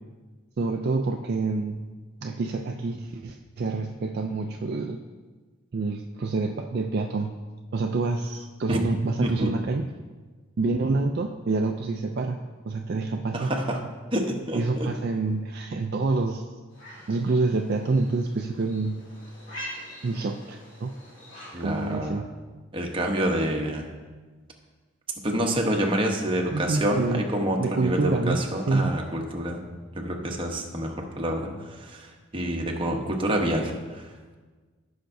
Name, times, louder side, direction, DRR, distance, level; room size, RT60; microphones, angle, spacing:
voice 1, 0.6-1.8 2.2-5.0 5.7-7.3 7.7-9.9 10.6-12.4 12.6-13.5 14.5-16.4 17.1-19.0 20.0-20.9 21.6-22.3 26.5-27.3 27.6-29.0, right 3 dB, 50° right, 3 dB, 0.4 m, -27 dB
voice 2, 9.2-9.5 13.3-13.8 14.1-14.9 21.5-22.2 22.7-23.9 25.2-29.7 29.9-34.1, right 1 dB, 25° right, 1 dB, 1.0 m, -27 dB
sound 1, 16.7-22.0, equal, 70° left, 2.6 m, -44 dB
15.0 x 5.8 x 2.6 m, 1.4 s
head